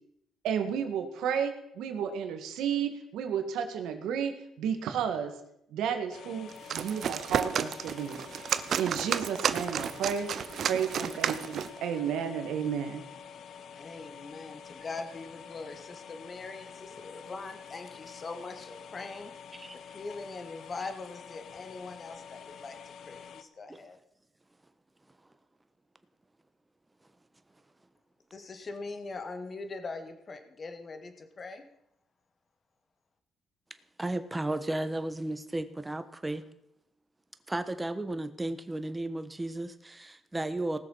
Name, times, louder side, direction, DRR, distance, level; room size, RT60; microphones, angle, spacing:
voice 1, 0.4-5.3 5.7-8.2 8.8-10.3 10.6-13.0, right 8 dB, 85° right, 7 dB, 1.7 m, -32 dB
sound 1, 6.1-23.4, left 7 dB, 65° left, 0.9 m, -48 dB
sound 2, 6.5-11.8, right 8 dB, 60° right, 0.7 m, -32 dB
voice 2, 13.8-19.3 19.9-22.8 23.1-24.0 28.3-31.6, left 3 dB, 40° left, 7 dB, 1.8 m, -42 dB
voice 3, 34.0-36.4 37.5-40.8, right 2 dB, 15° right, 10 dB, 1.2 m, -34 dB
19.0 x 6.7 x 5.6 m, 0.78 s
cardioid pair, 90°, 0 cm